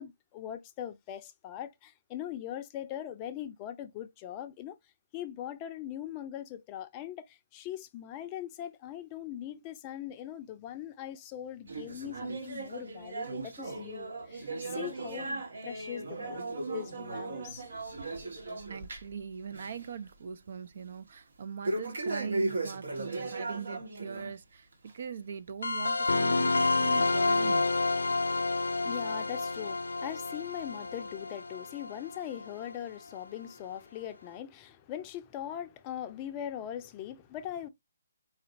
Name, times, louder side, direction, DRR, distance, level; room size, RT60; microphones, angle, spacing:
voice 1, 0.0-4.8 5.1-17.6 28.3-37.7, left 11 dB, 25° left, 0.5 m, -41 dB
sound 1, 11.7-19.2 19.5-19.9 20.2-20.3 21.6-24.3 24.7-24.9 25.6-25.7 26.6-26.7 27.5-27.6, right 2 dB, 70° right, 1.3 m, -37 dB
voice 2, 18.7-24.7 24.9-27.7, right 7 dB, 55° right, 0.5 m, -41 dB
sound 2, 25.6-32.7, left 3 dB, 80° left, 0.4 m, -29 dB
4.2 x 2.5 x 2.9 m
figure-of-eight pair, 145°, 0 cm